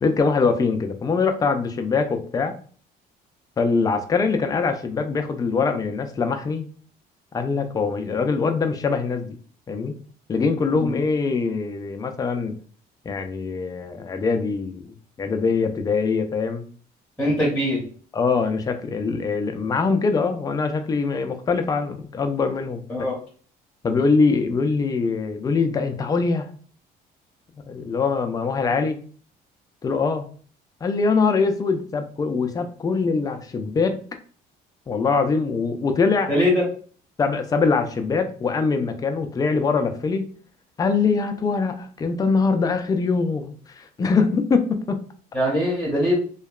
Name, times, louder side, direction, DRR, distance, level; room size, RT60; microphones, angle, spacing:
voice 1, 0.0-2.5 3.6-6.7 7.3-9.4 9.7-9.9 10.3-12.5 13.1-14.8 15.2-16.7 17.2-17.3 18.1-22.8 23.8-26.5 27.7-29.0 29.8-30.3 30.8-34.0 34.9-36.3 37.2-40.3 40.8-45.0, left 4 dB, 20° left, 7 dB, 0.3 m, -23 dB
voice 2, 17.2-17.8 22.9-23.2 36.3-36.6 45.3-46.2, left 1 dB, 5° left, -3 dB, 0.8 m, -21 dB
2.7 x 2.2 x 2.3 m, 0.44 s
cardioid pair, 110°, 17 cm